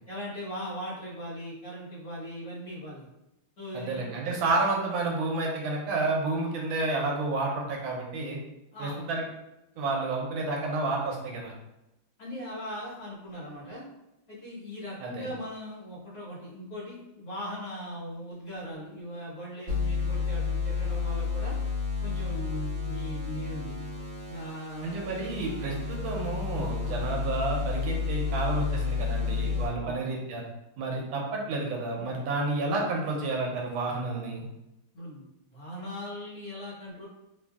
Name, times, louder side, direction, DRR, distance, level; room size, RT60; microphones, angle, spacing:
voice 1, 0.1-3.0 3.6-4.1 6.4-6.5 8.7-9.0 12.2-13.8 14.3-21.5 22.0-23.8 24.3-25.0 26.8-26.9 29.8-29.9 30.9-31.0 34.9-37.1, equal, 55° left, -9 dB, 1.6 m, -39 dB
voice 2, 3.7-8.4 8.8-9.2 9.8-11.5 15.0-15.3 24.8-30.4 30.8-34.4, right 3 dB, 80° right, 0 dB, 1.3 m, -30 dB
sound 1, 19.7-29.7, left 5 dB, 40° right, 1.3 m, -31 dB
3.4 x 2.5 x 2.3 m, 0.92 s
omnidirectional pair, 2.2 m